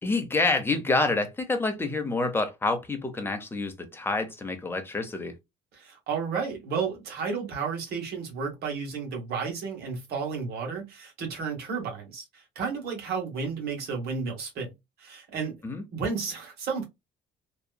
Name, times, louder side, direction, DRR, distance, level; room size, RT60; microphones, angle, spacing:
voice 1, 0.0-5.3 15.6-15.8, left 3 dB, 15° left, 0.8 m, -27 dB
voice 2, 5.7-14.7 15.0-15.6 15.9-16.9, right 5 dB, 70° right, 1.4 m, -32 dB
2.8 x 2.3 x 2.3 m
cardioid pair, 110°, 17 cm